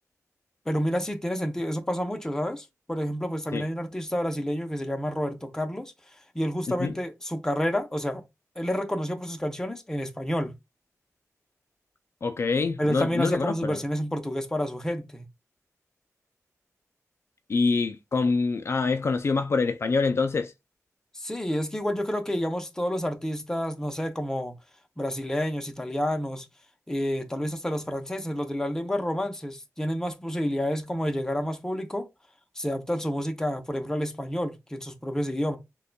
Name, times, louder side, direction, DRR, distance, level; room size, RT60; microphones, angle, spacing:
voice 1, 0.7-5.9 6.3-8.2 8.6-10.5 12.8-15.3 21.1-24.5 25.0-26.5 26.9-32.0 32.6-35.6, equal, 10° left, 0.6 m, -29 dB
voice 2, 12.2-13.8 17.5-20.5, left 4 dB, 50° left, 0.3 m, -25 dB
6.4 x 2.2 x 2.2 m
wide cardioid pair, 110°, 6 cm